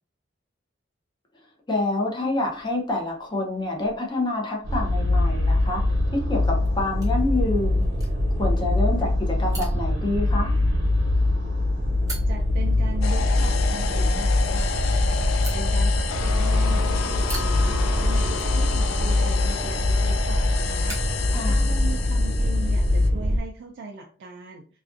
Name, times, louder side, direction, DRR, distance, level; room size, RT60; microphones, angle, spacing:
voice 1, 1.7-5.8 6.1-7.8 8.4-10.5 21.3-21.6, left 2 dB, 25° left, 1 dB, 0.6 m, -27 dB
sound 1, 2.4-22.0, right 2 dB, 20° right, 0.8 m, -47 dB
sound 2, 4.6-23.4, left 1 dB, 80° right, 0.8 m, -23 dB
voice 2, 12.3-14.8 15.5-21.0 21.5-24.7, right 3 dB, 65° right, 1 dB, 0.4 m, -38 dB
sound 3, 13.0-23.1, left 6 dB, 75° left, 0.3 m, -31 dB
2.4 x 2.3 x 2.5 m, 0.41 s
head